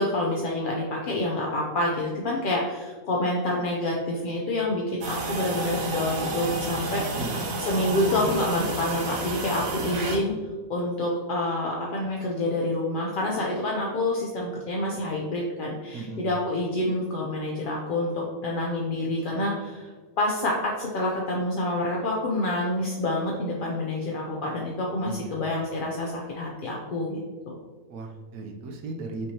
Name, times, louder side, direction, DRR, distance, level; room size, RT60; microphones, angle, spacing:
voice 1, 0.0-7.0 7.6-10.3 10.7-19.9 20.2-27.6, left 1 dB, 60° left, -2 dB, 0.5 m, -27 dB
sound 1, 5.0-10.2, right 2 dB, 60° right, 0.8 m, -30 dB
voice 2, 15.9-16.3 25.0-25.4 27.9-29.3, right 3 dB, 90° right, 3 dB, 1.1 m, -36 dB
5.4 x 3.1 x 2.8 m, 1.4 s
omnidirectional pair, 1.5 m